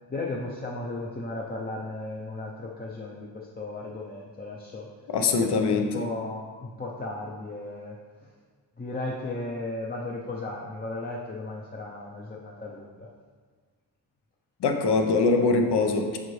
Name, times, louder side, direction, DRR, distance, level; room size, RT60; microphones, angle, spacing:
voice 1, 0.1-4.9 5.4-8.0 8.2-8.3 8.8-13.1, left 2 dB, 25° left, -3 dB, 0.6 m, -35 dB
voice 2, 5.1-5.9 14.6-16.2, left 4 dB, 80° left, 4 dB, 0.8 m, -23 dB
7.5 x 5.0 x 3.2 m, 1.6 s
wide cardioid pair, 145°, 40 cm